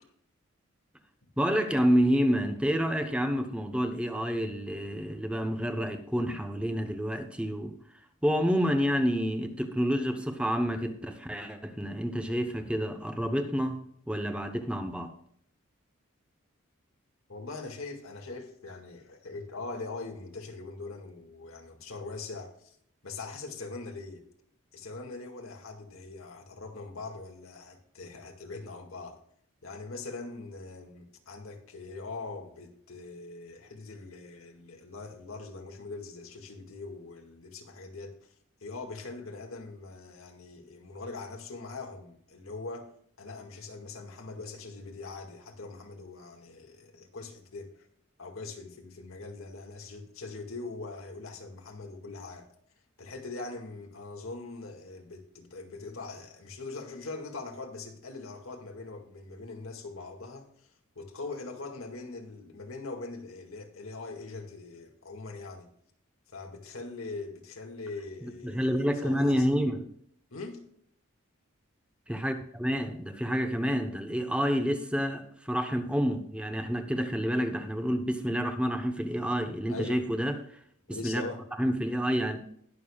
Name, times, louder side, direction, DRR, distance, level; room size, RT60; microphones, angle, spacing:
voice 1, 1.4-7.8 8.2-13.8 14.1-15.1 68.4-69.8 72.1-80.3 81.0-81.2 81.6-82.4, equal, 5° right, 0.8 m, -28 dB
voice 2, 17.3-22.8 23.0-24.2 24.7-29.2 29.6-38.3 38.6-42.9 43.2-47.9 48.2-52.5 53.0-65.7 66.3-69.5 70.3-70.6 79.7-80.0 80.9-81.4, left 3 dB, 90° left, 2.0 m, -42 dB
20.0 x 6.8 x 2.3 m
head